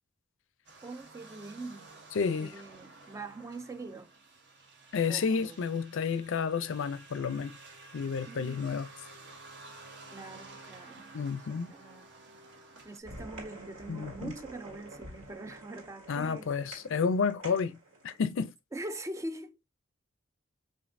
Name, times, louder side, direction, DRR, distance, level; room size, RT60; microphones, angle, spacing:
sound 1, 0.6-13.0, right 3 dB, 55° right, 1.0 m, -52 dB
voice 1, 0.8-1.9 2.4-4.1 5.1-5.6 8.3-8.7 10.1-11.1 11.4-12.1 12.8-16.5 18.7-19.6, right 2 dB, 15° right, 0.3 m, -43 dB
voice 2, 2.1-2.5 4.9-7.6 7.9-8.9 11.1-11.7 13.9-14.3 16.1-17.8 18.0-18.5, left 5 dB, 65° left, 0.4 m, -30 dB
sound 2, 13.0-18.3, right 1 dB, 75° right, 2.1 m, -48 dB
5.1 x 2.8 x 2.5 m
head